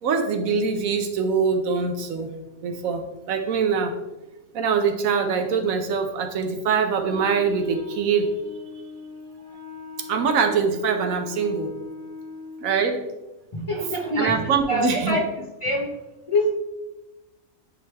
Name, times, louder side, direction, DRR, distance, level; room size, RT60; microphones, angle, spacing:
voice 1, 0.0-2.3 2.6-3.9 4.5-8.3 10.1-11.7 12.6-13.1 14.2-15.2, right 5 dB, 85° right, 5 dB, 1.2 m, -23 dB
Wind instrument woodwind instrument, 7.0-12.8, left 4 dB, 60° left, 1.7 m, -41 dB
voice 2, 13.5-14.3 14.7-15.2 15.6-15.9 16.3-16.5, left 1 dB, 30° left, -1 dB, 0.7 m, -24 dB
9.7 x 3.3 x 3.4 m, 1.0 s
omnidirectional pair, 1.4 m